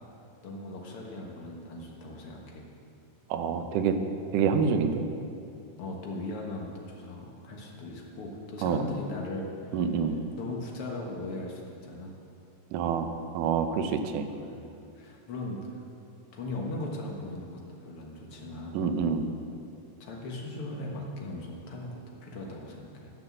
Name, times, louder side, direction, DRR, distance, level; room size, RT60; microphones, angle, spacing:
voice 1, 0.4-2.7 3.5-3.7 5.8-10.0 10.4-12.1 12.9-13.1 14.4-14.7 15.0-15.9 16.3-18.8 19.5-19.6 20.0-23.1, left 2 dB, 50° left, -1 dB, 1.9 m, -39 dB
voice 2, 3.3-4.0 4.3-5.0 8.6-8.8 9.7-10.2 12.7-13.1 13.3-14.3 18.7-19.3, right 6 dB, 80° right, 7 dB, 2.2 m, -27 dB
12.0 x 6.6 x 7.4 m, 2.5 s
omnidirectional pair, 3.8 m